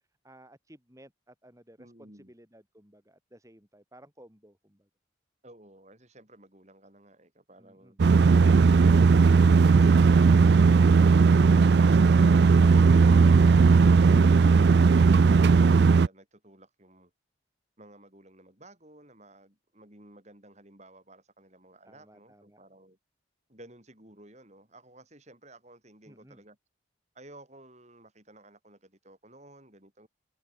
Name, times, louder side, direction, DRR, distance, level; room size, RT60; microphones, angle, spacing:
voice 1, 0.2-4.9 7.6-8.0 21.9-22.6 26.1-26.4, right 1 dB, 15° right, 3.3 m, -56 dB
voice 2, 1.8-2.3 5.4-8.0 14.1-17.1 17.8-23.0 23.5-26.6 27.1-30.1, right 1 dB, 35° right, 5.7 m, -54 dB
sound 1, 8.0-16.1, right 4 dB, 55° right, 0.4 m, -18 dB
head